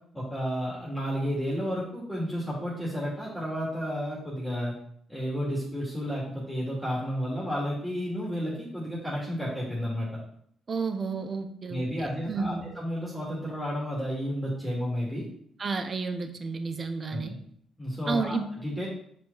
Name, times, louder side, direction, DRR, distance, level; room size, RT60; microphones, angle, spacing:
voice 1, 0.1-4.7 5.1-10.1 11.7-15.3 17.0-17.4 17.8-18.9, equal, ahead, -5 dB, 2.7 m, -32 dB
voice 2, 10.7-12.7 15.6-17.3 18.1-18.4, right 4 dB, 40° right, 8 dB, 0.8 m, -31 dB
7.2 x 4.8 x 4.1 m, 0.65 s
cardioid pair, 90°, 0 cm